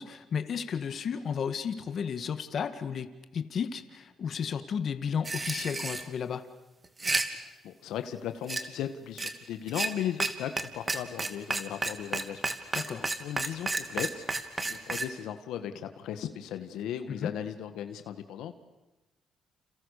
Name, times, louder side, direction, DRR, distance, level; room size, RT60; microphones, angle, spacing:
voice 1, 0.0-6.5 12.8-13.1 17.1-17.3, left 7 dB, 55° left, 10 dB, 1.9 m, -33 dB
sound 1, 5.2-6.0 6.8-7.2 8.5-8.6 9.2-9.3 9.7-9.9 10.2-10.3 10.6-10.7 10.9-15.1, right 3 dB, 25° right, 2.8 m, -30 dB
voice 2, 7.6-12.8 13.2-14.2 14.5-18.6, left 10 dB, 85° left, 9 dB, 1.8 m, -37 dB
30.0 x 29.0 x 6.8 m, 1.1 s
cardioid pair, 90°, 0 cm